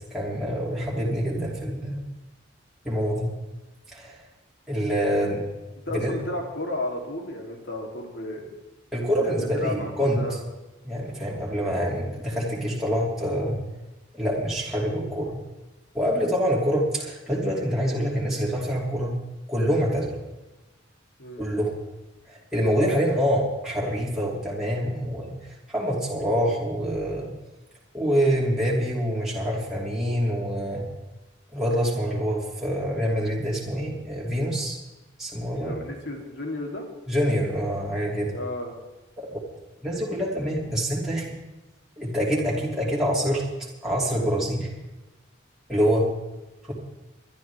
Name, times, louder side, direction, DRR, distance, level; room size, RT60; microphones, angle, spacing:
voice 1, 0.1-2.0 2.8-3.3 3.9-4.2 4.7-5.4 5.9-6.1 8.9-10.2 10.8-13.6 14.1-15.3 15.9-19.2 19.5-20.2 21.4-21.7 22.3-25.3 25.7-27.3 27.9-30.8 31.5-34.8 35.2-35.8 37.1-38.3 39.2-39.4 39.8-41.3 42.0-43.4 43.8-44.7 45.7-46.1, equal, ahead, -6 dB, 2.8 m, -26 dB
voice 2, 5.9-8.5 9.2-10.4 21.2-21.5 35.5-36.9 38.3-38.7, left 1 dB, 65° left, 0 dB, 3.3 m, -33 dB
23.0 x 12.0 x 3.6 m, 1.1 s
head